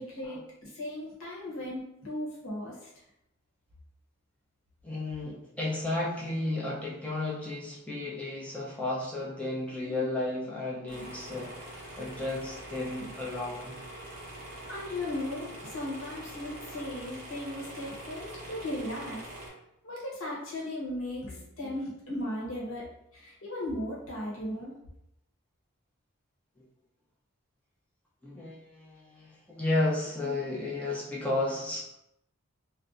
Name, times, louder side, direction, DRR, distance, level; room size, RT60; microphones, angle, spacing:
voice 1, 0.0-2.9 14.3-19.2 19.8-22.8 23.1-24.7, left 1 dB, 85° left, -5 dB, 1.0 m, -37 dB
voice 2, 4.8-13.8 21.3-21.8 28.2-31.8, left 2 dB, 5° left, -5 dB, 0.5 m, -33 dB
sound 1, 10.9-19.5, right 1 dB, 45° right, 0.7 m, -44 dB
2.6 x 2.1 x 2.4 m, 0.82 s
head